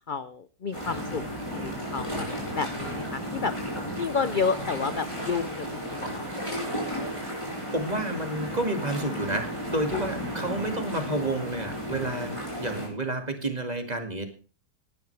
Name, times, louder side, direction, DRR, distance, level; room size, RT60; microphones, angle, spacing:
voice 1, 0.1-1.2 1.5-2.3 2.5-3.5 4.0-6.3 10.5-10.8, left 5 dB, 45° left, 12 dB, 0.6 m, -31 dB
sound 1, 0.7-12.9, equal, 15° left, 6.5 m, -34 dB
voice 2, 7.7-14.3, right 1 dB, 25° right, 6 dB, 2.5 m, -30 dB
18.5 x 12.5 x 3.4 m, 0.37 s
omnidirectional pair, 1.7 m